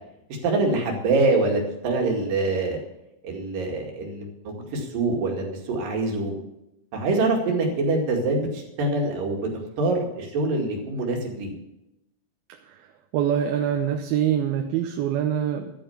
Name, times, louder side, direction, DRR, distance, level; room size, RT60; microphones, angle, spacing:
voice 1, 0.4-2.8 3.2-6.3 6.9-9.5 9.8-11.5, right 2 dB, 65° right, 1 dB, 3.8 m, -25 dB
voice 2, 13.1-15.7, right 9 dB, 80° right, 4 dB, 2.7 m, -24 dB
12.0 x 9.0 x 7.1 m, 0.89 s
omnidirectional pair, 4.3 m